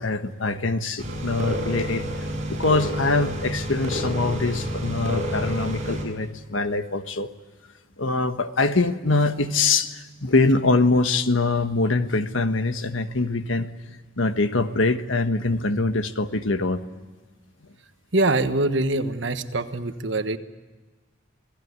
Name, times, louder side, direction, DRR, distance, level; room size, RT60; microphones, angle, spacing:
voice 1, 0.0-2.1 2.5-7.3 8.0-13.7 14.2-16.9, left 3 dB, 75° left, 9 dB, 1.4 m, -23 dB
sound 1, 1.0-6.0, equal, 35° right, 7.0 m, -29 dB
voice 2, 18.1-20.4, right 2 dB, 60° right, 9 dB, 1.3 m, -24 dB
28.5 x 18.0 x 9.6 m, 1.3 s
head